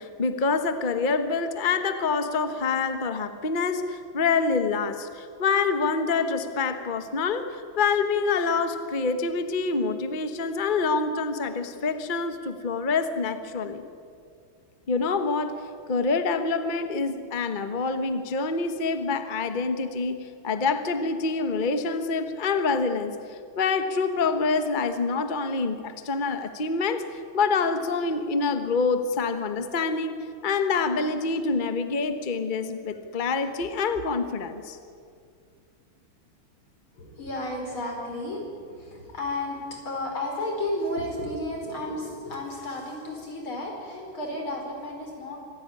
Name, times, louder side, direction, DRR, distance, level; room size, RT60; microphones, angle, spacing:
voice 1, 0.0-13.8 14.9-15.6 15.9-23.1 23.6-27.0 27.3-34.8, left 4 dB, 30° left, 8 dB, 1.1 m, -26 dB
voice 2, 36.9-45.4, left 1 dB, 80° left, 1 dB, 5.7 m, -33 dB
25.5 x 16.0 x 9.8 m, 2.3 s
omnidirectional pair, 2.2 m